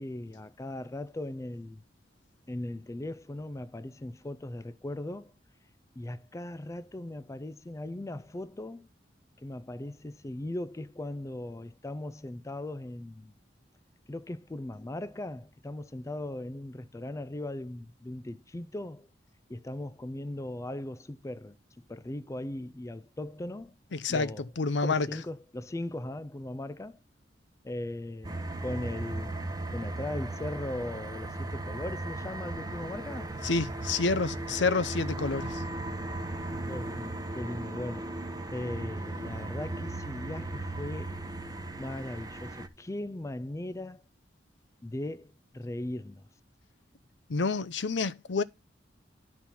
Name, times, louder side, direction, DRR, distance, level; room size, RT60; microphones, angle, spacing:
voice 1, 0.0-1.8 2.5-5.3 6.0-8.9 9.4-13.3 14.1-19.1 19.5-21.6 21.9-23.8 24.1-24.4 24.8-27.0 27.6-33.3 36.7-38.1 38.5-41.2 41.8-44.0 44.8-46.3, left 1 dB, 15° left, 0.4 m, -38 dB
voice 2, 23.9-25.1 33.4-35.6 47.3-48.4, left 4 dB, 80° left, 0.7 m, -28 dB
sound 1, 28.2-42.7, right 2 dB, 20° right, 1.0 m, -37 dB
12.0 x 4.2 x 5.8 m
head